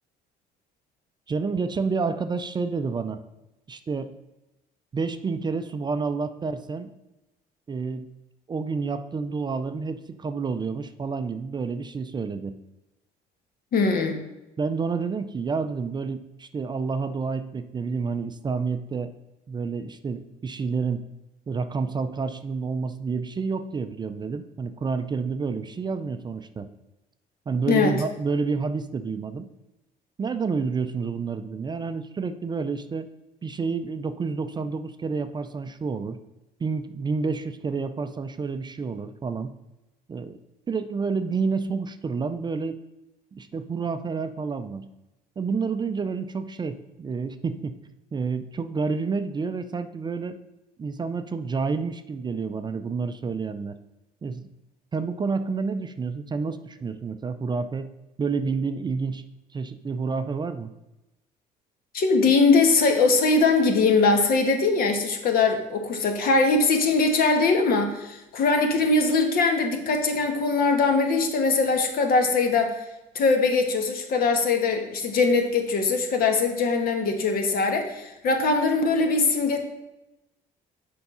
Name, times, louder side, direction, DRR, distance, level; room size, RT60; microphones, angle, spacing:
voice 1, 1.3-3.2 3.7-4.1 4.9-6.9 7.7-8.1 8.5-12.6 14.6-19.1 19.5-21.1 21.5-26.7 27.5-29.5 30.2-33.1 33.4-36.2 36.6-39.5 40.1-40.4 40.7-42.8 43.3-44.9 45.4-47.8 48.1-50.4 50.8-53.8 54.2-54.5 54.9-57.9 58.2-59.2 59.5-60.7, right 4 dB, 25° right, 10 dB, 0.4 m, -29 dB
voice 2, 13.7-14.2 27.7-28.0 61.9-72.7 73.1-79.6, left 3 dB, 60° left, 5 dB, 1.3 m, -21 dB
6.9 x 4.7 x 5.5 m, 0.97 s
cardioid pair, 110°, 17 cm